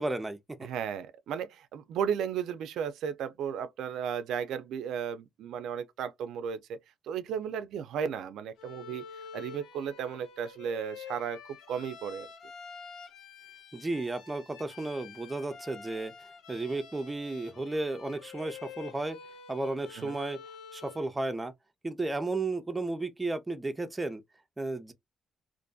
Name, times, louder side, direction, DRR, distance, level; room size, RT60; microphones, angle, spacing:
voice 1, 0.0-0.7 13.7-16.1 16.5-19.2 19.5-20.4 20.7-21.5 21.8-24.2 24.6-24.9, right 2 dB, 15° right, 0.5 m, -33 dB
voice 2, 0.6-6.8 7.0-9.1 9.3-11.4 11.7-12.3 20.0-20.2, right 7 dB, 80° right, 0.3 m, -34 dB
Bowed string instrument, 8.6-21.1, left 6 dB, 85° left, 0.7 m, -48 dB
2.5 x 2.4 x 2.2 m
cardioid pair, 90°, 0 cm